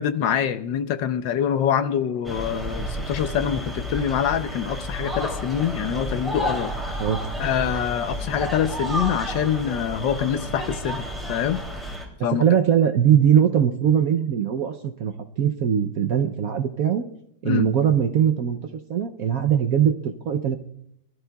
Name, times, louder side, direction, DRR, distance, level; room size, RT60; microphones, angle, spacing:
voice 1, 0.0-6.7 7.4-11.6 12.2-12.5 17.4-17.7, left 9 dB, 75° left, 11 dB, 1.4 m, -25 dB
sound 1, 2.2-12.0, equal, ahead, 2.6 m, -31 dB
voice 2, 12.3-17.0 17.4-18.6 18.9-20.6, right 9 dB, 65° right, 6 dB, 0.9 m, -21 dB
24.0 x 13.0 x 2.3 m, 0.74 s
omnidirectional pair, 2.1 m